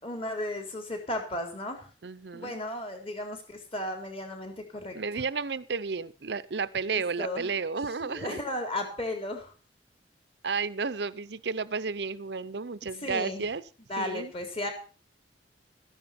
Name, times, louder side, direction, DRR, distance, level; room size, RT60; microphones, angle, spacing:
voice 1, 0.0-1.8 2.3-5.0 6.9-7.5 8.0-9.5 13.0-13.4 13.9-14.7, left 1 dB, 30° left, 4 dB, 3.8 m, -35 dB
voice 2, 2.0-2.6 4.9-8.4 10.4-13.6 14.0-14.3, right 4 dB, 65° right, 16 dB, 0.7 m, -32 dB
14.0 x 10.5 x 5.8 m, 0.37 s
head